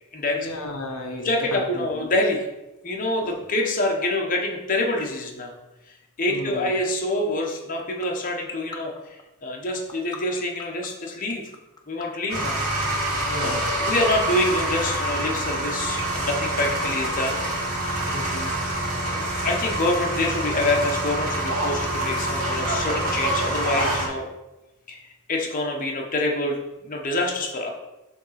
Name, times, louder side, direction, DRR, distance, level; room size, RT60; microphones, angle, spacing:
voice 1, 0.4-2.1 3.2-3.5 6.3-6.8 13.0-13.7 18.1-18.6, left 2 dB, 70° left, 2 dB, 0.9 m, -34 dB
voice 2, 1.2-2.4 2.8-5.5 6.2-11.4 11.9-12.6 13.4-17.4 19.0-24.3 24.9-25.0 25.3-27.7, left 2 dB, 40° left, 0 dB, 1.0 m, -26 dB
sound 1, 7.6-17.2, left 4 dB, 20° left, 0.6 m, -37 dB
sound 2, 12.3-24.1, right 1 dB, 70° right, 2.1 m, -26 dB
6.5 x 3.6 x 5.7 m, 0.99 s
head